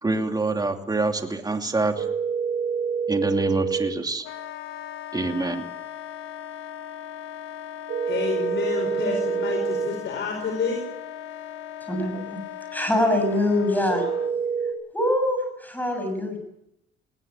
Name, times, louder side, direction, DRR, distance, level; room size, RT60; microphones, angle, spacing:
voice 1, 0.0-2.1 3.1-4.2 5.1-5.6, right 2 dB, 20° right, 5 dB, 2.7 m, -25 dB
sound 1, 2.0-3.9 7.9-9.9 13.9-14.7, right 6 dB, 65° right, 4.6 m, -26 dB
Wind instrument woodwind instrument, 4.2-14.3, left 10 dB, 90° left, 1.3 m, -38 dB
voice 2, 8.1-10.8, left 5 dB, 65° left, 2 dB, 5.2 m, -29 dB
voice 3, 11.9-12.4 12.7-14.1 14.9-16.4, left 1 dB, 10° left, 5 dB, 7.4 m, -24 dB
19.0 x 18.5 x 8.7 m, 0.82 s
cardioid pair, 90°, 20 cm